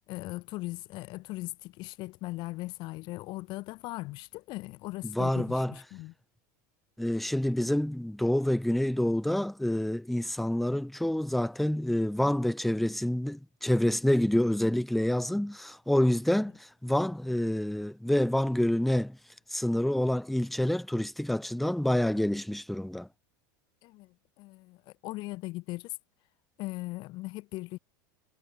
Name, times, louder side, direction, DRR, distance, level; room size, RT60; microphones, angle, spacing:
voice 1, 0.1-6.1 23.8-25.9 26.6-27.8, left 20 dB, 50° left, 1.3 m, -39 dB
voice 2, 5.0-5.7 7.0-16.5 16.8-19.2 19.5-23.1, left 1 dB, ahead, 0.3 m, -27 dB
supercardioid pair, 130°, 10 cm